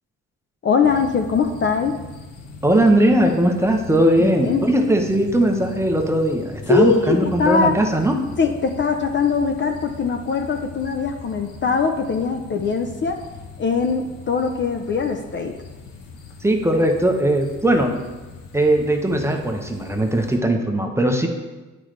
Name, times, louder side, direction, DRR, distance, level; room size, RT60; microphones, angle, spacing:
voice 1, 0.6-2.0 4.2-4.7 6.7-7.8 8.4-13.2 13.6-15.6, left 5 dB, 40° left, 5 dB, 0.6 m, -21 dB
sound 1, 0.8-20.4, left 4 dB, 90° left, 1.0 m, -40 dB
voice 2, 2.6-8.2 16.4-17.9 18.5-21.3, right 1 dB, 10° right, 3 dB, 0.8 m, -19 dB
8.5 x 5.1 x 3.3 m, 1.2 s
cardioid pair, 90°, 30 cm